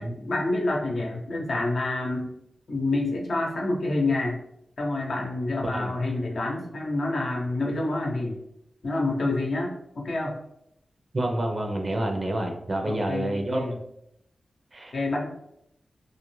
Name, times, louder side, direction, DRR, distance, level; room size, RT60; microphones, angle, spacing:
voice 1, 0.0-2.3 2.7-4.4 4.8-8.4 8.8-10.4 12.8-13.8 14.9-15.2, left 2 dB, 75° left, -1 dB, 0.7 m, -28 dB
voice 2, 5.6-6.0 11.1-13.7 14.7-14.9, right 1 dB, 50° right, 2 dB, 0.6 m, -28 dB
2.4 x 2.1 x 3.1 m, 0.76 s
cardioid pair, 45°, 0 cm